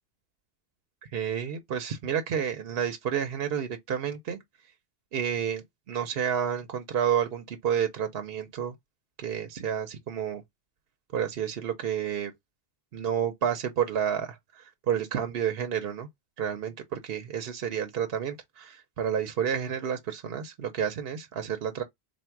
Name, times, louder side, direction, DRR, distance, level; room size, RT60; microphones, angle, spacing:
voice 1, 1.1-4.4 5.1-8.7 9.2-10.4 11.1-12.3 12.9-16.1 16.4-21.8, right 8 dB, 70° right, 0.9 m, -30 dB
3.5 x 2.3 x 4.4 m
omnidirectional pair, 1.1 m